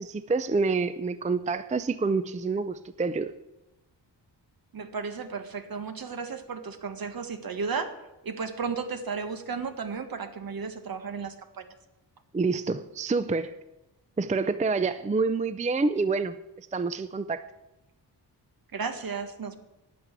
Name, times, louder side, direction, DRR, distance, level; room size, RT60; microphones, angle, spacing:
voice 1, 0.0-3.3 12.3-13.5 14.2-16.3 16.7-17.4, right 4 dB, 15° right, 13 dB, 0.5 m, -27 dB
voice 2, 4.7-8.0 8.2-11.6 18.7-19.6, right 5 dB, 55° right, 9 dB, 1.6 m, -34 dB
10.5 x 8.8 x 8.3 m, 0.97 s
cardioid pair, 90°, 42 cm